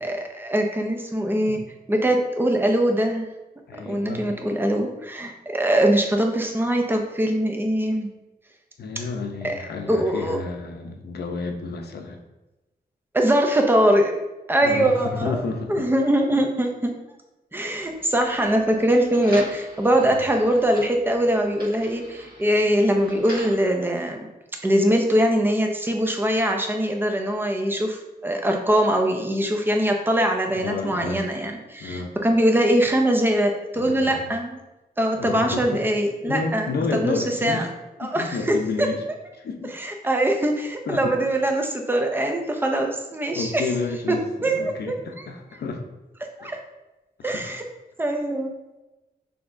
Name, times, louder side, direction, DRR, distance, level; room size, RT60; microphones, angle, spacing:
voice 1, 0.0-1.6 1.9-3.3 3.9-8.1 9.4-9.6 9.9-10.4 13.1-14.1 14.5-15.4 15.7-16.9 17.5-24.3 24.6-34.6 35.0-37.7 38.0-38.9 39.7-43.6 44.1-44.9 46.4-46.6 47.2-47.6 48.0-48.5, right 1 dB, 15° right, 3 dB, 0.6 m, -22 dB
voice 2, 3.7-4.3 8.8-12.2 14.6-15.9 20.1-20.2 30.5-31.3 31.8-32.2 33.8-34.2 35.2-35.8 36.2-37.7 38.0-39.0 39.3-39.7 40.9-41.2 43.3-45.9 46.4-46.5 47.2-47.5, left 4 dB, 75° left, 3 dB, 0.7 m, -30 dB
sound 1, 17.8-23.7, right 1 dB, 65° right, 1.5 m, -42 dB
5.9 x 3.4 x 2.6 m, 1.0 s
wide cardioid pair, 145°, 17 cm